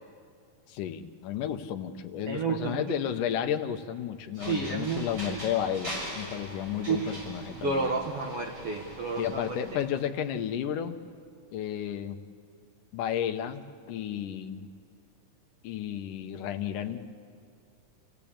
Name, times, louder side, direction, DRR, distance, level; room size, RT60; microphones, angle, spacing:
voice 1, 0.7-8.0 9.2-11.0 11.5-12.2 12.9-14.7 15.6-17.0, left 9 dB, 75° left, 7 dB, 2.4 m, -32 dB
voice 2, 2.3-2.8 4.3-5.4 6.9-7.2 7.6-9.6, right 4 dB, 60° right, 1 dB, 1.6 m, -31 dB
sound 1, 4.4-10.0, equal, 25° right, 7.3 m, -42 dB
28.0 x 16.0 x 8.7 m, 2.3 s
omnidirectional pair, 4.1 m